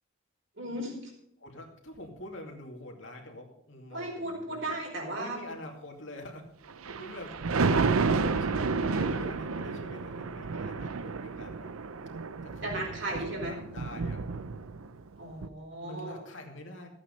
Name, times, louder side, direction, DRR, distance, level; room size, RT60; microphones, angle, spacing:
voice 1, 0.6-1.1 3.9-5.4 12.6-13.6 15.2-16.2, right 1 dB, 60° right, -1 dB, 4.6 m, -36 dB
voice 2, 1.4-4.7 5.2-6.5 7.0-7.9 8.2-11.7 12.4-14.2 15.8-16.9, left 1 dB, 65° left, 1 dB, 2.5 m, -45 dB
Thunder, 6.7-15.0 15.4-15.5, right 4 dB, 85° right, 0.7 m, -31 dB
14.5 x 8.8 x 5.3 m, 0.73 s
head